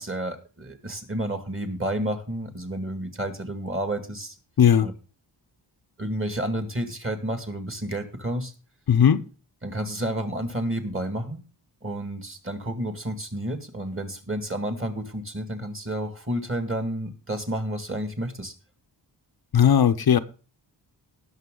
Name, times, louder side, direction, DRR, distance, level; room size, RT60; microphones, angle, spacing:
voice 1, 0.0-4.4 4.8-4.9 6.0-8.5 9.6-11.4 11.8-18.5, right 1 dB, 30° right, 2.2 m, -30 dB
voice 2, 4.6-4.9 8.9-9.2 19.5-20.2, left 8 dB, 55° left, 0.7 m, -17 dB
18.5 x 6.6 x 3.8 m
wide cardioid pair, 95°, 43 cm